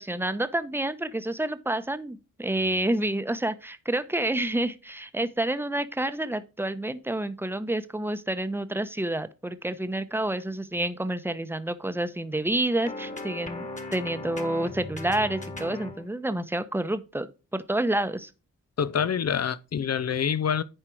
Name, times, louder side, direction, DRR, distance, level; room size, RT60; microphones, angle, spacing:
voice 1, 0.0-18.3, right 1 dB, 5° right, 0.9 m, -29 dB
sound 1, 12.8-16.1, left 2 dB, 20° left, 1.6 m, -38 dB
voice 2, 18.8-20.6, left 7 dB, 50° left, 0.7 m, -26 dB
10.0 x 4.5 x 4.6 m
cardioid pair, 55°, 33 cm